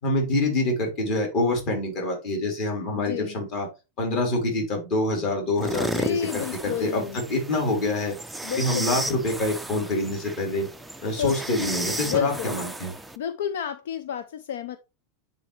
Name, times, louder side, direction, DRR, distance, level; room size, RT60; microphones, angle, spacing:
voice 1, 0.0-3.7 4.0-8.1 8.6-10.7 11.0-12.9, left 2 dB, 40° left, 3.5 m, -26 dB
voice 2, 2.9-3.4 5.8-7.2 8.4-9.2 11.1-12.5 13.2-14.8, left 9 dB, 80° left, 0.6 m, -31 dB
sound 1, 5.6-13.2, right 1 dB, ahead, 0.4 m, -34 dB
10.0 x 4.0 x 3.3 m
supercardioid pair, 160°, 0 cm